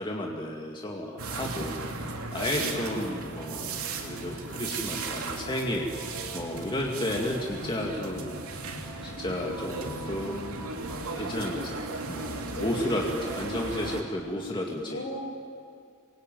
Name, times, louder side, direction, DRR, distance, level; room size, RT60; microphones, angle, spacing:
voice 1, 0.0-1.8 2.3-5.9 6.3-8.3 9.0-10.8 11.2-15.0, left 1 dB, 20° left, 0 dB, 2.2 m, -32 dB
sound 1, 1.2-14.0, right 3 dB, 75° right, 3.2 m, -36 dB
voice 2, 2.5-3.0 6.8-7.5 12.5-13.1 14.9-15.2, left 1 dB, 55° left, 3 dB, 5.5 m, -39 dB
27.5 x 22.5 x 9.3 m, 2.4 s
head